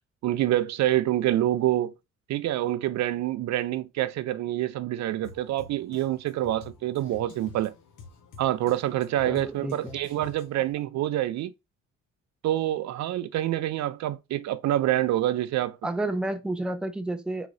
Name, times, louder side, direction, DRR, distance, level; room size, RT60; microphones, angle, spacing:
voice 1, 0.2-1.9 2.3-7.7 8.4-11.5 12.4-15.8, right 13 dB, 65° right, 0.4 m, -26 dB
Drum kit, 5.2-10.7, left 5 dB, 85° left, 1.1 m, -49 dB
voice 2, 9.2-10.0 15.8-17.5, right 2 dB, 5° right, 0.5 m, -30 dB
3.8 x 3.7 x 3.1 m
cardioid pair, 90°, 30 cm